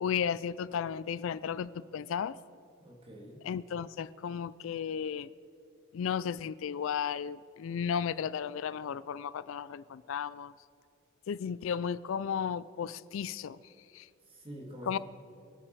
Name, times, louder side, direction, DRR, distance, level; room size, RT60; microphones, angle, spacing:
voice 1, 0.0-2.4 3.4-5.3 5.9-10.5 11.3-14.1 14.8-15.0, left 7 dB, 70° left, 18 dB, 0.3 m, -34 dB
voice 2, 2.8-3.4 14.3-15.0, equal, 25° right, -1 dB, 2.4 m, -46 dB
24.5 x 8.8 x 4.7 m, 2.7 s
head